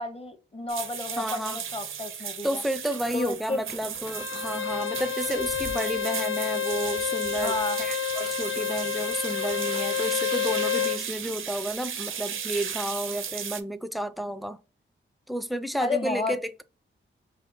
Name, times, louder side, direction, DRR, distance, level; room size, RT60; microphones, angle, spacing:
voice 1, 0.0-2.6 3.1-3.6 7.4-7.8 15.8-16.4, left 2 dB, 30° left, 0.8 m, -31 dB
sound 1, 0.7-13.6, right 8 dB, 80° right, 0.5 m, -35 dB
voice 2, 1.2-1.6 2.4-14.6 15.3-16.6, right 1 dB, ahead, 0.4 m, -31 dB
sound 2, 2.7-12.8, left 2 dB, 55° left, 1.1 m, -50 dB
Bowed string instrument, 4.1-11.0, left 9 dB, 75° left, 0.6 m, -29 dB
3.3 x 2.7 x 4.1 m
cardioid pair, 75°, 21 cm